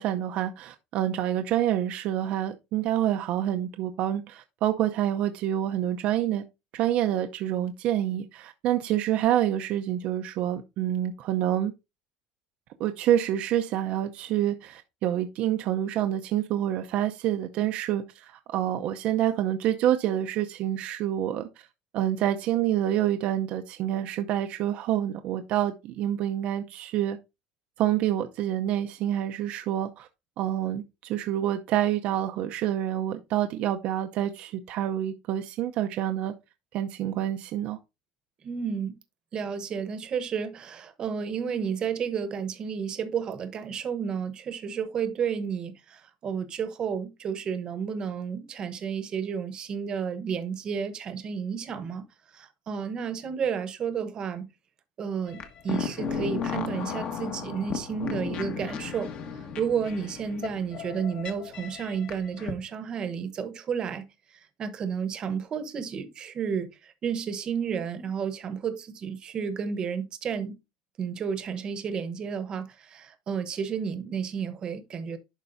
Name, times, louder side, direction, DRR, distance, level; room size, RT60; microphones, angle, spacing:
voice 1, 0.0-6.4 6.7-11.7 12.8-21.5 21.9-27.2 27.8-30.1 30.4-36.3 36.7-37.8, right 11 dB, 50° right, 0.6 m, -27 dB
voice 2, 38.4-39.0 39.3-52.1 52.3-54.5 55.0-59.1 59.6-64.0 64.3-70.6 71.0-75.2, right 7 dB, 30° right, 1.0 m, -32 dB
sound 1, 55.3-62.5, left 6 dB, 45° left, 1.3 m, -35 dB
11.0 x 4.5 x 2.6 m
cardioid pair, 155°, 3 cm